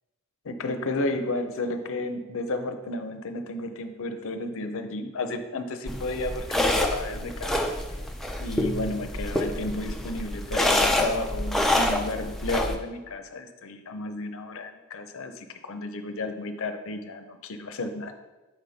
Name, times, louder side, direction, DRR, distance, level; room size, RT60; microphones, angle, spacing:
voice 1, 0.4-7.7 8.4-18.1, left 2 dB, 65° left, 8 dB, 0.6 m, -32 dB
sound 1, 5.9-12.8, left 1 dB, ahead, 0.4 m, -27 dB
6.2 x 5.0 x 4.1 m, 1.1 s
head